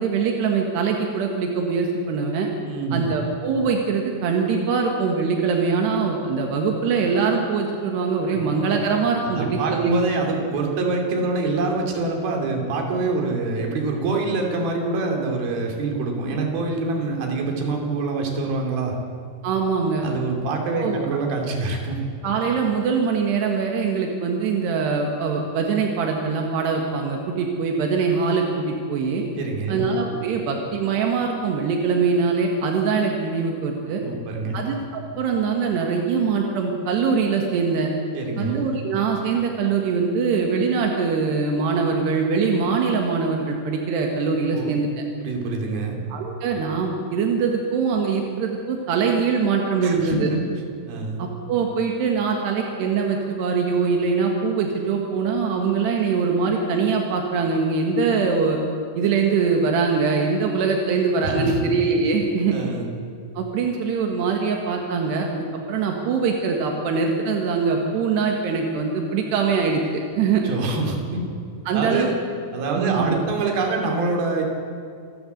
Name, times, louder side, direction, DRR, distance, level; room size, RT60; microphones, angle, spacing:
voice 1, 0.0-2.5 2.9-10.0 19.4-20.1 20.7-21.0 22.2-29.2 29.7-34.0 34.5-37.9 38.4-44.9 46.1-50.3 51.2-58.6 59.0-62.6 63.4-70.4 71.7-72.1 72.8-73.1, right 5 dB, 85° right, 2 dB, 3.9 m, -23 dB
voice 2, 2.7-3.1 8.3-8.4 9.2-19.0 20.0-22.0 29.4-29.8 34.0-34.6 38.1-38.6 44.5-44.7 45.2-46.0 49.8-50.4 50.9-51.2 61.2-61.7 62.5-62.9 70.4-71.2 71.7-72.1 72.5-74.4, right 3 dB, 65° right, 1 dB, 4.6 m, -25 dB
27.0 x 12.5 x 8.1 m, 2.3 s
omnidirectional pair, 4.7 m